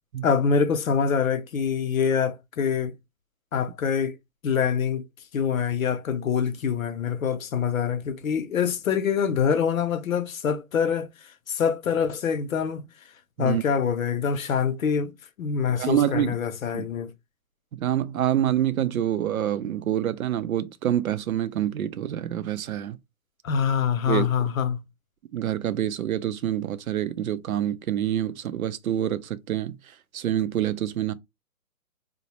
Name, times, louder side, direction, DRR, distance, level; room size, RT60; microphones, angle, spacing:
voice 1, 0.2-2.9 3.5-4.2 4.4-5.0 5.3-11.1 11.5-12.8 13.4-17.1 23.4-24.8, left 7 dB, 65° left, 0.7 m, -25 dB
voice 2, 15.7-16.3 16.7-16.9 17.7-23.0 24.1-24.5 25.3-31.1, right 11 dB, 70° right, 0.5 m, -27 dB
4.0 x 2.1 x 2.9 m
hypercardioid pair, 180°, 44 cm